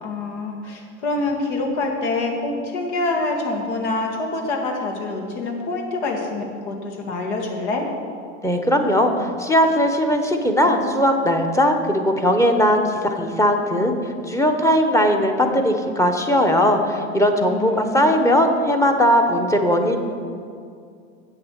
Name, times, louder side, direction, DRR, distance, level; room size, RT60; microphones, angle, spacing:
voice 1, 0.0-7.8 17.5-18.1, left 2 dB, 75° left, 2 dB, 2.2 m, -26 dB
voice 2, 8.4-14.0 14.3-20.0, equal, 10° left, 4 dB, 1.0 m, -19 dB
8.6 x 7.7 x 6.5 m, 2.3 s
supercardioid pair, 115°, 35 cm